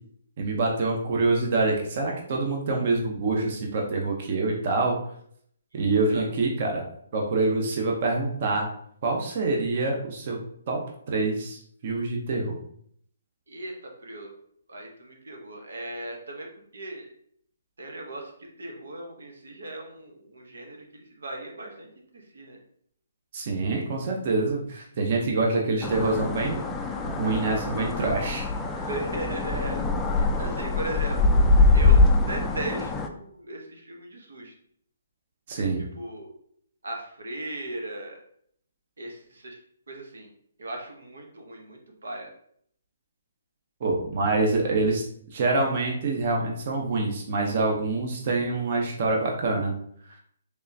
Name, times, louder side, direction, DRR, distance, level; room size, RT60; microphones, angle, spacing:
voice 1, 0.4-5.0 5.7-6.8 7.1-8.7 9.0-10.4 10.7-10.8 11.1-12.6 23.3-26.6 27.0-28.9 35.5-35.8 43.8-45.0 45.3-49.7, right 3 dB, 45° right, 0 dB, 0.7 m, -26 dB
voice 2, 13.5-14.3 14.7-16.5 16.7-17.1 17.8-18.3 18.6-21.9 22.1-22.6 28.9-29.8 30.1-31.3 31.7-34.5 36.0-36.3 36.8-38.2 39.0-39.6 39.9-40.3 40.6-42.3, right 2 dB, 85° right, 2 dB, 0.9 m, -37 dB
sound 1, 25.8-33.1, left 3 dB, 10° left, 0.3 m, -23 dB
3.5 x 3.3 x 2.7 m, 0.65 s
hypercardioid pair, 155°, 0 cm